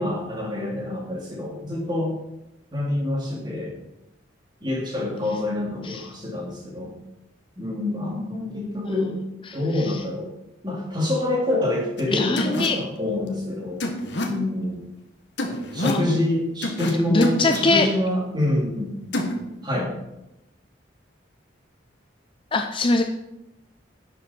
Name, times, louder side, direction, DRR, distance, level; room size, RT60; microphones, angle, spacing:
voice 1, 0.0-2.1 2.7-3.7 4.6-6.9 7.6-9.2 9.5-10.3 10.6-13.8 14.2-14.8 15.7-18.9 19.2-19.3 19.6-19.9, left 1 dB, 20° right, -2 dB, 2.8 m, -26 dB
voice 2, 9.5-10.0 12.1-12.8 15.8-16.0 17.1-17.9 22.5-23.0, left 3 dB, 25° left, 5 dB, 0.6 m, -23 dB
sound 1, 12.0-12.1 12.4-12.7 13.8-14.3 15.4-16.0 16.6-16.9 17.2-17.6 19.1-19.3, left 1 dB, 60° left, 1.6 m, -26 dB
12.0 x 7.6 x 4.4 m, 0.91 s
head